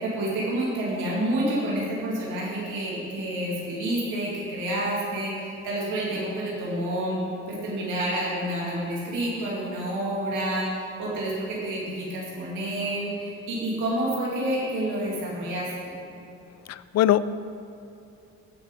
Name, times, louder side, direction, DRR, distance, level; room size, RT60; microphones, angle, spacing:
voice 1, 0.0-7.2 7.5-15.9, right 1 dB, 90° right, -5 dB, 2.6 m, -29 dB
voice 2, 16.7-17.3, left 11 dB, 60° left, 16 dB, 0.5 m, -21 dB
16.0 x 5.9 x 5.3 m, 2.7 s
cardioid pair, 90°, 30 cm